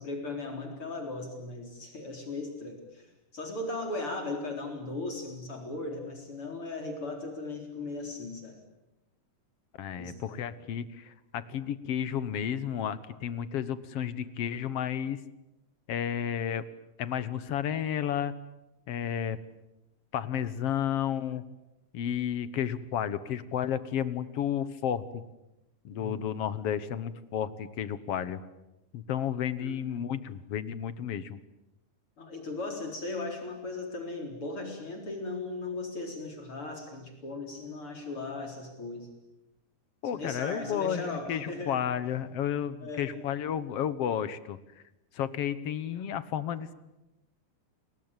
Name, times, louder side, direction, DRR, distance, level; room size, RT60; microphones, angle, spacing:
voice 1, 0.0-3.1 3.3-8.6 10.0-10.4 25.9-26.3 29.6-29.9 32.2-39.1 40.1-41.8 42.8-43.1, left 2 dB, 45° left, 3 dB, 4.9 m, -37 dB
voice 2, 9.8-15.2 15.9-16.7 17.0-18.3 18.9-19.4 20.1-21.4 21.9-25.2 25.8-28.4 28.9-31.4 40.0-44.6 45.1-46.7, left 9 dB, 60° left, 15 dB, 2.0 m, -32 dB
30.0 x 22.0 x 9.0 m, 0.95 s
omnidirectional pair, 3.5 m